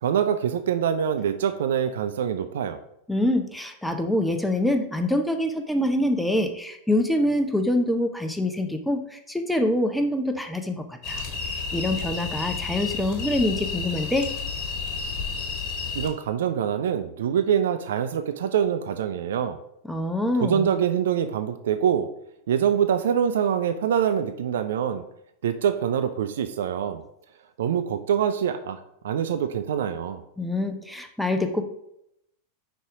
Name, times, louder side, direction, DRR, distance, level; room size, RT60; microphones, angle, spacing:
voice 1, 0.0-2.8 15.9-19.6 20.4-22.1 22.5-25.0 25.4-27.0 27.6-28.8 29.0-30.2, right 8 dB, 60° right, 9 dB, 0.4 m, -25 dB
voice 2, 3.1-14.3 19.9-20.7 30.4-31.6, left 1 dB, 5° left, 5 dB, 0.7 m, -25 dB
sound 1, 11.0-16.1, left 5 dB, 30° left, 1.5 m, -31 dB
5.6 x 3.8 x 4.7 m, 0.77 s
figure-of-eight pair, 90°, 0 cm